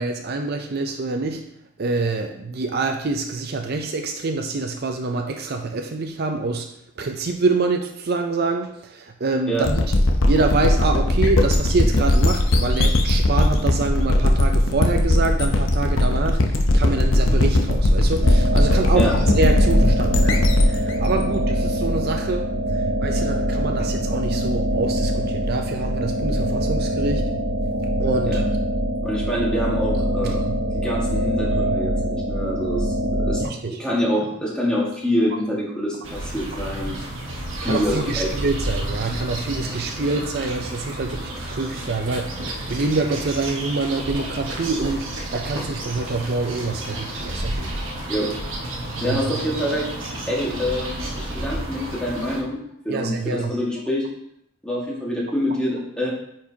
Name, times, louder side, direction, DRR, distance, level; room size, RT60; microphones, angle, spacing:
voice 1, 0.0-1.4 1.8-6.7 7.0-9.9 10.3-27.3 28.0-28.4 30.2-30.5 33.4-33.8 37.6-47.6 49.0-49.2 52.9-53.5, right 3 dB, 50° right, 4 dB, 0.5 m, -26 dB
sound 1, 9.6-22.3, left 1 dB, 75° left, 0.8 m, -18 dB
sound 2, 18.2-33.5, equal, 90° right, 0.8 m, -24 dB
voice 2, 29.0-37.0 37.6-38.3 40.1-40.2 48.1-48.3 49.0-49.9 50.3-52.6 52.8-54.0 54.6-56.1, equal, 5° left, -5 dB, 1.7 m, -26 dB
sound 3, 36.0-52.4, right 1 dB, 75° right, 1.2 m, -31 dB
8.9 x 4.7 x 2.8 m, 0.74 s
head